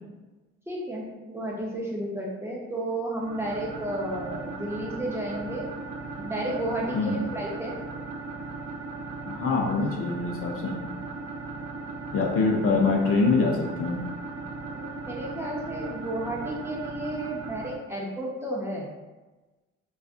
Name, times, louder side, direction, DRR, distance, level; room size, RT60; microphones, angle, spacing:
voice 1, 0.7-5.7 6.2-7.8 14.7-18.9, right 1 dB, 10° right, -4 dB, 0.5 m, -32 dB
sound 1, 3.2-17.8, right 3 dB, 65° right, 0.5 m, -37 dB
voice 2, 9.3-10.7 12.1-14.0, left 4 dB, 50° left, -1 dB, 0.5 m, -24 dB
2.5 x 2.3 x 2.4 m, 1.2 s
cardioid pair, 90°, 30 cm